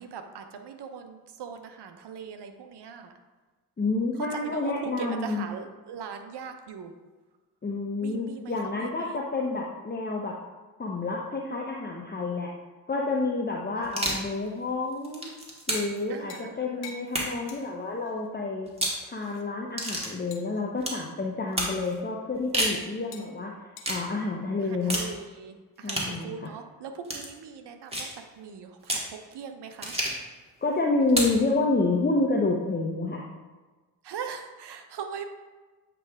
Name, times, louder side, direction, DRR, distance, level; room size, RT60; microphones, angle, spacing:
voice 1, 0.0-3.1 4.2-6.9 8.0-9.2 13.8-14.0 16.1-16.9 24.6-30.0 34.0-35.3, right 6 dB, 55° right, 6 dB, 0.9 m, -40 dB
voice 2, 3.8-5.4 7.6-10.3 10.8-12.5 12.9-15.3 15.7-18.7 19.0-23.5 23.9-25.0 25.8-26.5 30.6-33.3, left 3 dB, 20° left, -1 dB, 0.9 m, -29 dB
sound 1, 13.8-14.3 14.9-16.0 17.1-17.5 18.7-19.0 19.8-20.1 20.8-21.0 21.6-21.8 22.3-22.8 23.8-24.0 24.9-25.1 25.9-26.1 27.0-27.3 27.9-28.2 28.8-29.1 29.8-30.3 31.1-31.4, right 1 dB, 10° right, 1.9 m, -30 dB
sound 2, 15.7-15.9 16.3-16.6 16.8-17.0 17.5-17.7 18.1-18.2 18.9-19.4 20.3-20.6 21.8-22.0 22.6-22.8 23.1-23.3 23.8-23.9, left 6 dB, 90° left, 0.7 m, -44 dB
8.4 x 3.3 x 3.6 m, 1.3 s
hypercardioid pair, 45°, 48 cm